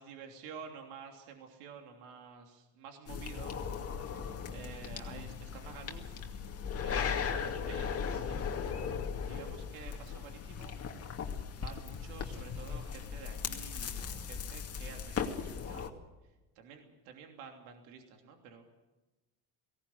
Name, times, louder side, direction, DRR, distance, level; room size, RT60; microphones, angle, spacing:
voice 1, 0.0-6.2 6.8-8.4 9.2-11.3 11.5-15.9 16.5-18.6, right 6 dB, 75° right, 3 dB, 3.2 m, -50 dB
sound 1, 3.1-15.9, left 6 dB, 30° left, 2.3 m, -38 dB
18.0 x 17.5 x 9.4 m, 1.1 s
supercardioid pair, 110°, 48 cm